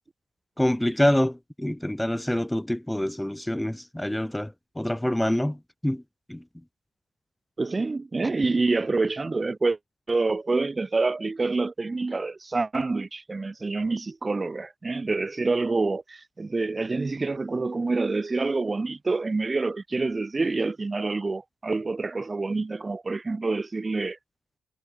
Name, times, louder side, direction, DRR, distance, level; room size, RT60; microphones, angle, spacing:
voice 1, 0.6-5.6 5.8-6.0 6.3-6.4, left 1 dB, 5° left, 6.4 m, -26 dB
voice 2, 7.6-9.8 10.1-24.2, right 3 dB, 25° right, 6.7 m, -27 dB
cardioid pair, 90°, 0 cm